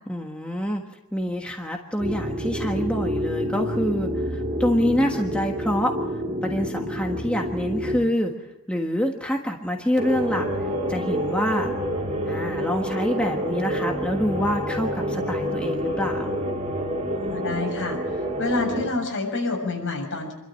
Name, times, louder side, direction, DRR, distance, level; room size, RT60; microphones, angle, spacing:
voice 1, 0.1-0.8 1.1-5.9 6.4-8.3 8.7-11.7 12.2-16.3, equal, 5° left, 1 dB, 1.4 m, -26 dB
sound 1, 2.0-8.0 10.0-18.9, equal, 30° right, 3.4 m, -28 dB
voice 2, 17.1-20.3, left 3 dB, 55° left, 1 dB, 7.1 m, -28 dB
27.5 x 13.0 x 9.1 m, 1.0 s
head